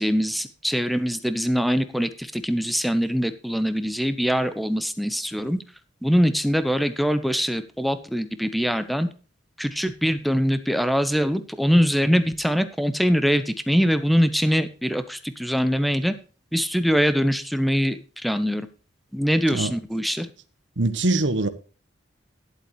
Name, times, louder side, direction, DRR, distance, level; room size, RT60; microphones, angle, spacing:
voice 1, 0.0-5.6 6.0-9.1 9.6-16.1 16.5-18.7 19.1-20.3, equal, ahead, 0.9 m, -23 dB
voice 2, 20.8-21.5, right 2 dB, 70° right, 1.3 m, -23 dB
12.5 x 11.5 x 3.1 m
head